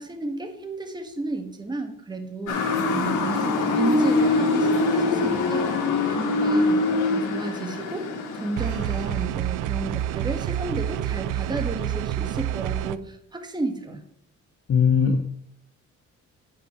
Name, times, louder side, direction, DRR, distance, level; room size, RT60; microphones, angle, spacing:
voice 1, 0.0-14.0, right 2 dB, 15° right, 5 dB, 1.5 m, -32 dB
Motor vehicle (road) / Siren, 2.5-9.2, left 2 dB, 85° left, 1.8 m, -23 dB
sound 1, 8.6-13.0, right 12 dB, 90° right, 0.5 m, -28 dB
voice 2, 14.7-15.2, left 6 dB, 45° left, 7 dB, 0.8 m, -19 dB
9.6 x 5.7 x 5.8 m, 0.67 s
cardioid pair, 90°, 30 cm